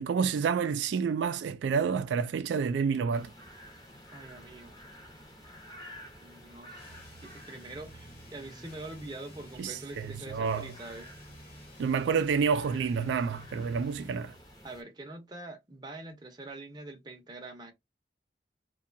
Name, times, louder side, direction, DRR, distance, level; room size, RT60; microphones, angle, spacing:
voice 1, 0.0-3.3 9.6-10.7 11.8-14.4, right 6 dB, 80° right, 0.3 m, -29 dB
sound 1, 3.1-14.8, equal, 20° left, 0.8 m, -51 dB
voice 2, 4.1-4.9 6.2-11.1 14.6-17.7, right 2 dB, 25° right, 0.6 m, -45 dB
sound 2, 6.7-14.3, equal, 55° left, 1.0 m, -51 dB
2.7 x 2.2 x 2.5 m
head